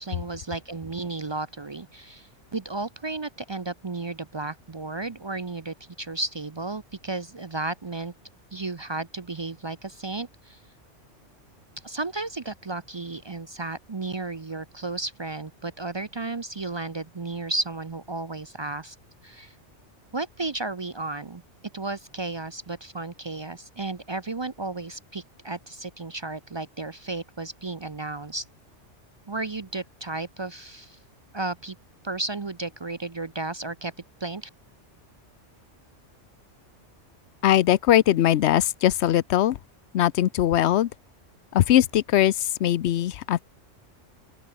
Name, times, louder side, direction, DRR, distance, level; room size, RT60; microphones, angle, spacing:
voice 1, 0.0-8.1 8.5-10.6 11.8-19.0 19.2-19.5 20.1-21.4 21.7-28.5 29.3-31.0 31.3-31.8 32.0-33.9 34.2-34.5, right 3 dB, 30° right, 0.5 m, -33 dB
voice 2, 37.4-39.6 39.9-40.9 41.5-43.4, left 12 dB, 70° left, 0.9 m, -21 dB
open air
omnidirectional pair, 1.2 m